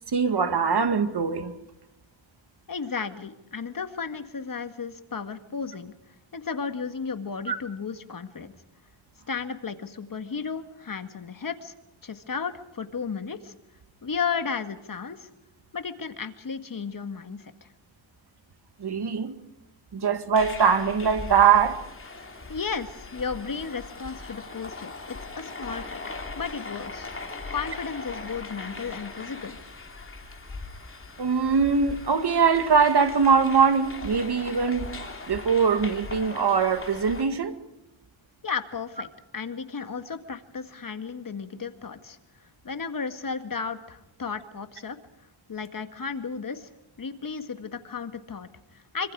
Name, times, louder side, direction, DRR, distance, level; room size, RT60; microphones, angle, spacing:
voice 1, 0.1-1.5 7.5-7.6 18.8-19.4 19.9-21.8 31.2-37.5, right 6 dB, 50° right, 2.1 m, -22 dB
voice 2, 2.7-5.9 6.3-8.5 9.3-11.7 12.0-13.5 14.0-15.3 15.7-17.7 22.5-26.0 26.4-27.1 27.5-29.6 38.4-39.1 39.3-42.2 42.6-45.0 45.5-46.7 47.0-49.1, left 5 dB, 40° left, 1.9 m, -34 dB
sound 1, 20.3-37.3, left 3 dB, 25° left, 3.1 m, -40 dB
26.5 x 25.5 x 4.9 m
wide cardioid pair, 115°, 49 cm